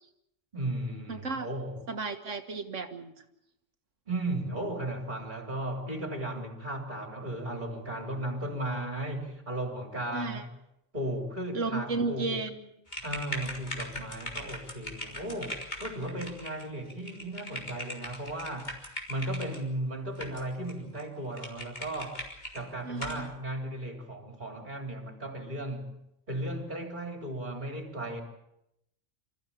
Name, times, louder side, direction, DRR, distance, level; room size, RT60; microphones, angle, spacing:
voice 1, 0.5-1.8 4.1-10.5 10.9-12.4 13.0-18.8 19.1-22.2 22.5-26.0 26.3-28.2, right 1 dB, 40° right, 4.0 m, -35 dB
voice 2, 1.1-1.5 1.9-3.1 10.1-10.4 11.5-12.6 22.8-23.3, right 3 dB, 85° right, 2.0 m, -33 dB
sound 1, 12.9-19.6 20.2-20.7 21.0-21.1 21.4-22.6 23.0-23.2, left 1 dB, 35° left, 3.7 m, -40 dB
26.5 x 14.5 x 8.6 m
omnidirectional pair, 1.2 m